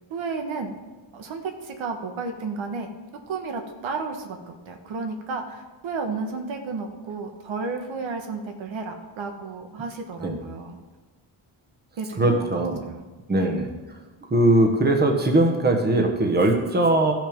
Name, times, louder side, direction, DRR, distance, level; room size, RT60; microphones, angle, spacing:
voice 1, 0.1-0.7 1.1-2.9 3.3-10.8 12.0-13.0 13.4-13.7, right 4 dB, 80° right, 4 dB, 1.4 m, -32 dB
voice 2, 12.2-12.8 13.3-13.7 14.3-17.1, right 2 dB, 20° right, 3 dB, 1.2 m, -20 dB
14.0 x 6.3 x 5.2 m, 1.3 s
cardioid pair, 140°, 46 cm